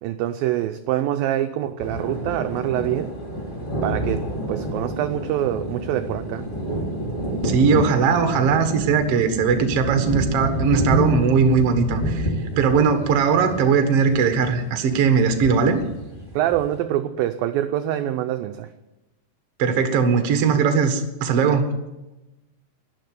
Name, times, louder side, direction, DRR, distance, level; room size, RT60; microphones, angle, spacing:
voice 1, 0.0-3.2 3.8-6.5 16.3-18.7, right 12 dB, 80° right, 8 dB, 2.1 m, -25 dB
sound 1, 1.8-16.8, right 1 dB, 15° left, 2.4 m, -28 dB
voice 2, 7.4-12.3 12.6-15.8 19.6-21.7, right 5 dB, 55° right, 7 dB, 1.8 m, -19 dB
12.0 x 11.0 x 9.5 m, 1.0 s
omnidirectional pair, 4.7 m